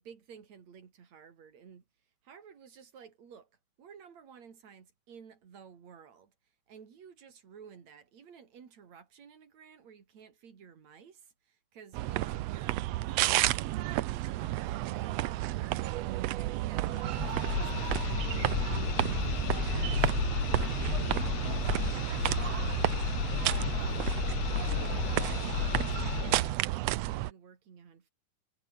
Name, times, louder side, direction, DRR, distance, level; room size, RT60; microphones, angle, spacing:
voice 1, 0.0-1.8 2.2-3.5 3.8-6.3 6.7-15.8 16.3-20.1 20.4-23.1 23.5-24.3 24.6-28.1, right 7 dB, 55° right, 4.2 m, -53 dB
sound 1, 11.9-27.3, right 16 dB, 80° right, 1.5 m, -31 dB
sound 2, 16.9-26.5, left 21 dB, 80° left, 1.7 m, -33 dB
omnidirectional pair, 3.7 m